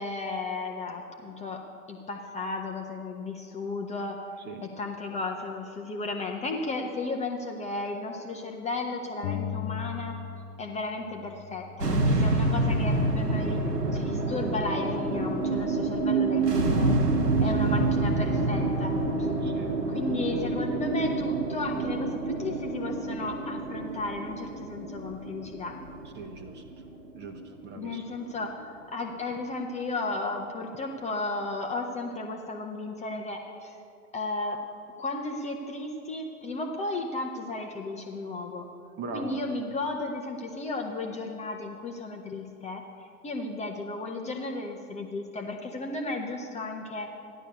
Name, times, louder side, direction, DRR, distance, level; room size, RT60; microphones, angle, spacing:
voice 1, 0.0-1.6 1.9-4.2 4.6-10.2 10.6-13.6 13.9-16.9 17.4-19.3 19.9-25.8 27.8-33.8 34.1-34.6 35.0-38.7 39.1-47.1, left 2 dB, 15° left, 2 dB, 1.0 m, -34 dB
sound 1, 9.2-10.7 11.0-12.8, left 8 dB, 35° left, 0.6 m, -38 dB
sound 2, 11.8-28.2, right 2 dB, 80° right, 1.5 m, -27 dB
voice 2, 19.4-19.7 26.2-26.6 27.1-28.0 39.0-39.4, right 3 dB, 20° right, 6 dB, 1.3 m, -40 dB
14.0 x 11.0 x 6.8 m, 2.6 s
figure-of-eight pair, 105°, 47 cm